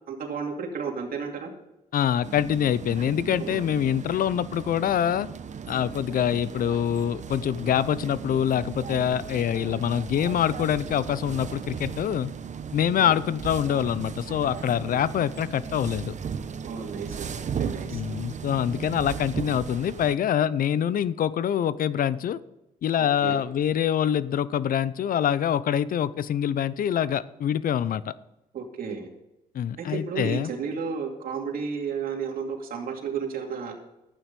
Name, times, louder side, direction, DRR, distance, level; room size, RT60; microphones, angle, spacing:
voice 1, 0.1-1.5 3.4-3.6 13.0-13.1 16.6-18.0 23.0-23.4 28.5-29.1 29.8-33.8, right 6 dB, 70° right, 2 dB, 2.5 m, -32 dB
voice 2, 1.9-5.3 5.7-12.3 12.7-16.1 17.9-22.4 22.8-28.1 29.5-30.5, left 9 dB, 65° left, 17 dB, 0.6 m, -25 dB
sound 1, 2.2-20.2, right 7 dB, 50° right, 0.9 m, -36 dB
11.5 x 9.2 x 5.3 m, 0.90 s
cardioid pair, 80°, 16 cm